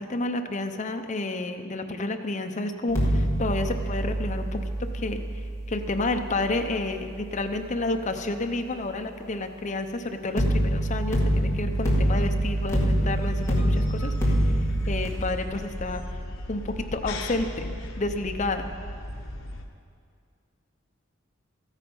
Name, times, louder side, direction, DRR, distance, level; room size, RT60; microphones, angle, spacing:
voice 1, 0.0-4.6 4.9-14.6 14.9-16.0 16.5-18.7, left 2 dB, 35° left, 6 dB, 0.7 m, -30 dB
sound 1, 2.9-8.0 10.4-15.1, equal, 15° left, 1.7 m, -26 dB
sound 2, 11.7-19.6, left 1 dB, 70° left, 0.9 m, -37 dB
13.5 x 9.1 x 5.4 m, 2.3 s
head